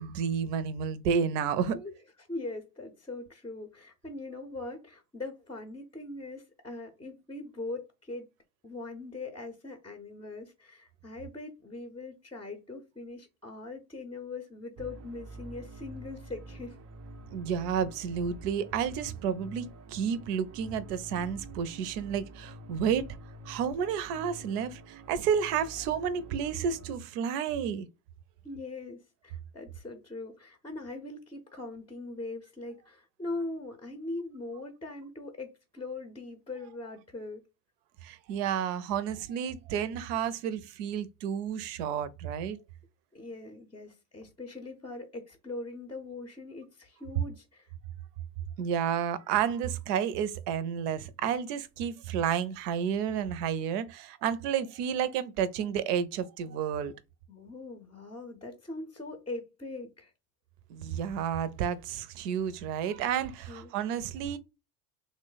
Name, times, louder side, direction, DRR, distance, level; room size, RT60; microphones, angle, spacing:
voice 1, 0.0-1.8 17.3-23.1 23.5-27.9 38.0-42.6 48.6-56.9 60.7-64.4, right 8 dB, 70° right, 0.7 m, -31 dB
voice 2, 2.3-8.3 8.6-16.8 28.4-37.4 43.1-47.7 57.3-60.1 63.5-63.7, left 2 dB, 10° left, 0.6 m, -41 dB
sound 1, 14.8-27.0, right 1 dB, 35° right, 0.4 m, -47 dB
3.1 x 2.1 x 3.9 m
hypercardioid pair, 85°, 49 cm